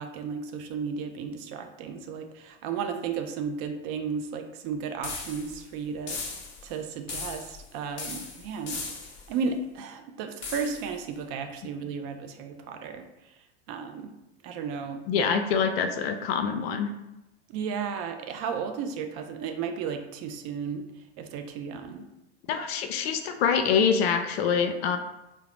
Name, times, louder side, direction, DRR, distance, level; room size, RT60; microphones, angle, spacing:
voice 1, 0.0-6.2 6.6-8.8 9.3-13.1 13.7-14.1 14.4-15.4 17.5-20.8 21.2-22.1, right 6 dB, 45° right, 6 dB, 0.4 m, -34 dB
sound 1, 5.0-5.6 6.1-6.7 7.1-7.7 8.0-9.3 10.4-10.9, left 4 dB, 35° left, 0.8 m, -37 dB
voice 2, 15.1-16.9 22.5-25.0, left 6 dB, 60° left, 7 dB, 0.5 m, -25 dB
3.7 x 2.0 x 3.0 m, 0.94 s
hypercardioid pair, 85°, 34 cm